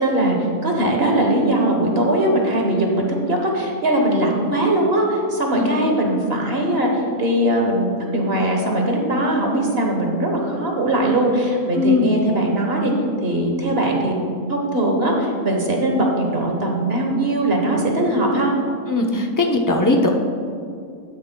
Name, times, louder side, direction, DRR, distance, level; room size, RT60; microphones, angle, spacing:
voice 1, 0.0-12.9 13.2-14.1 14.5-18.5, right 1 dB, 45° right, 1 dB, 1.3 m, -20 dB
voice 2, 11.7-12.1 18.9-20.1, left 3 dB, 25° left, 2 dB, 0.4 m, -19 dB
12.5 x 9.4 x 2.2 m, 2.4 s
omnidirectional pair, 1.5 m